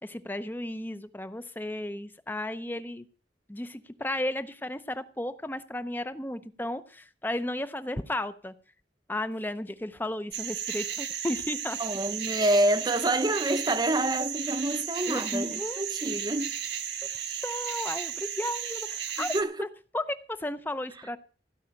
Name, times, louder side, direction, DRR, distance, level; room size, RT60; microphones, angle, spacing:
voice 1, 0.0-3.1 3.5-8.5 9.1-11.8 15.1-15.8 17.4-19.7 19.9-21.2, left 1 dB, 10° left, 0.7 m, -34 dB
sound 1, 10.3-19.4, right 8 dB, 75° right, 1.4 m, -34 dB
voice 2, 11.8-16.6 19.2-19.5, right 1 dB, 25° right, 0.8 m, -27 dB
16.5 x 5.6 x 8.8 m
head